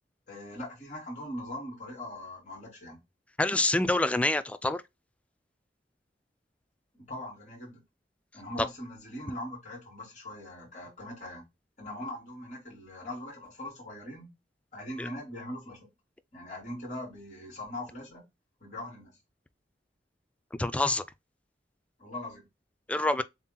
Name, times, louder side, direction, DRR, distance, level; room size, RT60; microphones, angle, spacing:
voice 1, 0.3-3.0 6.9-7.8 8.3-11.4 11.8-14.3 14.7-15.9 16.3-18.2 18.6-19.1 22.0-22.4, left 1 dB, 45° left, 3.2 m, -41 dB
voice 2, 3.4-4.8 15.0-15.1 20.6-21.0 22.9-23.2, left 2 dB, 10° left, 0.3 m, -26 dB
7.2 x 2.8 x 2.2 m
head